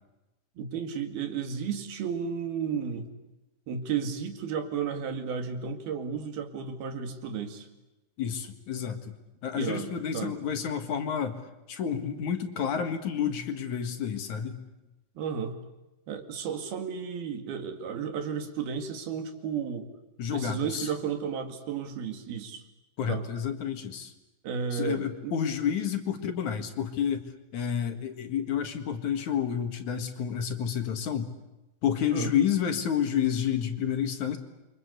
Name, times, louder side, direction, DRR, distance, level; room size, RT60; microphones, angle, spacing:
voice 1, 0.6-3.1 3.7-7.7 9.5-10.4 15.2-15.6 16.1-19.9 20.3-22.6 23.1-23.3 24.4-25.4 32.1-32.3, right 7 dB, 90° right, 7 dB, 4.1 m, -33 dB
voice 2, 8.2-9.1 9.4-11.4 11.7-14.6 20.2-20.9 23.0-24.1 24.7-27.3 27.5-31.3 31.8-34.4, left 8 dB, 60° left, 7 dB, 2.9 m, -30 dB
28.5 x 24.5 x 8.2 m, 1.0 s
omnidirectional pair, 4.2 m